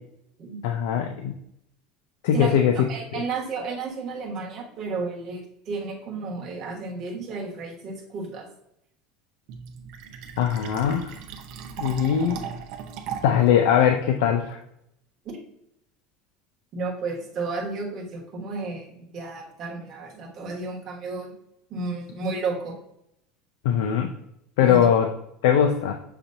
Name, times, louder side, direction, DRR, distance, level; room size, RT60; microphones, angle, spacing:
voice 1, 0.6-1.3 2.2-2.7 3.1-3.2 10.4-11.1 11.8-12.4 13.2-14.6 23.6-24.1 24.6-25.1 25.4-25.9, left 8 dB, 75° left, 5 dB, 0.4 m, -21 dB
voice 2, 2.3-8.5 15.2-15.4 16.7-21.3 21.7-22.7 24.6-24.9, right 3 dB, 30° right, -1 dB, 1.2 m, -32 dB
Fill (with liquid), 9.5-13.5, right 7 dB, 50° right, 0.6 m, -37 dB
6.5 x 2.9 x 2.6 m, 0.77 s
cardioid pair, 175°, 0 cm